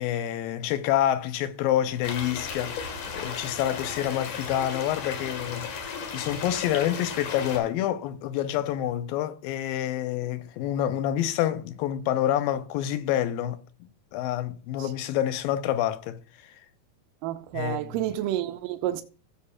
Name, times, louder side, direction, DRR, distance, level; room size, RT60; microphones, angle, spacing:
voice 1, 0.0-5.7 6.1-16.6 17.5-18.1, left 11 dB, 85° left, 2.5 m, -28 dB
sound 1, 2.0-7.6, left 5 dB, 65° left, 3.1 m, -35 dB
voice 2, 17.2-19.0, right 12 dB, 80° right, 2.2 m, -30 dB
16.0 x 6.8 x 2.4 m
omnidirectional pair, 4.0 m